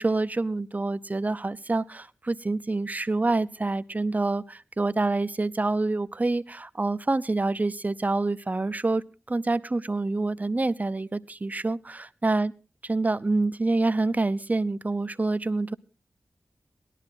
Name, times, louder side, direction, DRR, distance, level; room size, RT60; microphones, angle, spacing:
voice 1, 0.0-12.5 12.9-15.7, right 2 dB, 30° right, 14 dB, 0.7 m, -27 dB
18.0 x 12.5 x 3.9 m, 0.33 s
cardioid pair, 60°, 5 cm